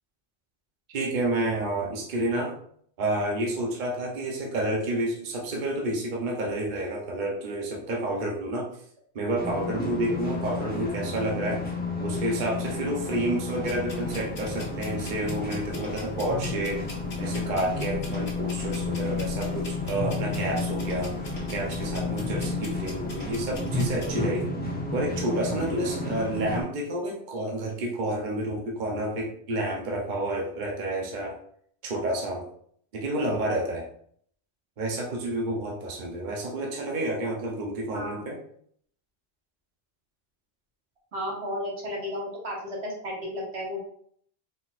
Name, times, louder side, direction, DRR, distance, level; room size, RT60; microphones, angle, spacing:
voice 1, 0.9-2.5 3.0-8.7 9.1-11.6 12.0-16.8 17.2-21.2 21.5-24.6 24.9-31.4 31.8-32.5 32.9-33.9 34.8-38.4, right 1 dB, 50° right, -1 dB, 0.8 m, -29 dB
sound 1, 9.4-26.6, left 3 dB, 10° left, 0.8 m, -31 dB
sound 2, 13.6-24.1, left 2 dB, 80° left, 1.5 m, -42 dB
voice 2, 41.1-43.8, equal, 85° right, -3 dB, 1.6 m, -33 dB
4.1 x 4.0 x 2.4 m, 0.63 s
omnidirectional pair, 1.1 m